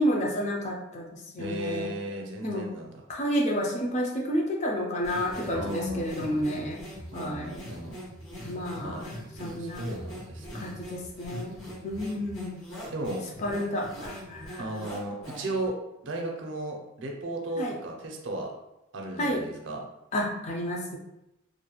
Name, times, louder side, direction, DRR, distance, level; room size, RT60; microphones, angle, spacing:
voice 1, 0.0-1.9 2.4-2.7 3.1-6.8 7.1-7.6 8.4-9.1 9.4-9.8 10.5-11.6 11.8-12.6 13.4-14.6 17.6-17.8 19.2-19.4 20.1-21.0, equal, 35° left, 0 dB, 0.4 m, -30 dB
voice 2, 1.4-2.9 5.5-6.4 7.1-7.9 8.8-9.0 9.6-10.7 12.9-13.2 14.6-15.7 16.0-18.5 18.9-19.8, right 1 dB, 65° right, 1 dB, 0.5 m, -35 dB
sound 1, 5.0-15.7, equal, 75° left, 1.0 m, -41 dB
2.5 x 2.2 x 2.9 m, 0.90 s
head